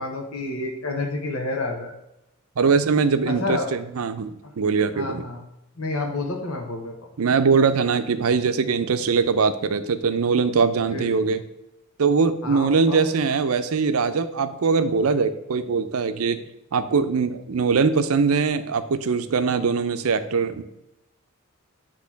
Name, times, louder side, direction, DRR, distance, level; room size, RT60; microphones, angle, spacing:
voice 1, 0.0-1.9 3.3-3.7 4.4-4.5 4.9-5.4 5.8-6.9 10.9-11.2 12.4-13.0, left 2 dB, 85° left, 2 dB, 1.0 m, -29 dB
voice 2, 2.6-5.2 7.2-11.4 12.0-16.4 16.7-20.6, right 5 dB, 85° right, 11 dB, 0.5 m, -22 dB
8.2 x 3.0 x 5.7 m, 0.87 s
head